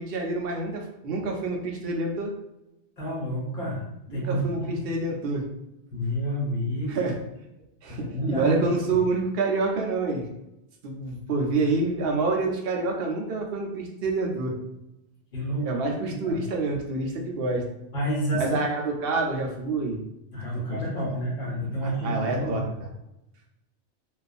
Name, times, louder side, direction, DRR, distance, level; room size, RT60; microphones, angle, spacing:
voice 1, 0.0-2.3 4.1-5.4 6.9-7.1 7.8-10.2 10.8-14.5 15.6-17.6 18.4-20.0 20.7-20.8 21.8-22.6, right 3 dB, 65° right, 1 dB, 0.7 m, -27 dB
voice 2, 3.0-3.9 4.1-4.9 5.9-7.1 7.8-8.6 8.9-9.0 15.3-16.4 17.9-18.7 20.3-22.7, equal, 50° left, -4 dB, 1.1 m, -29 dB
2.4 x 2.4 x 2.4 m, 0.88 s
omnidirectional pair, 1.2 m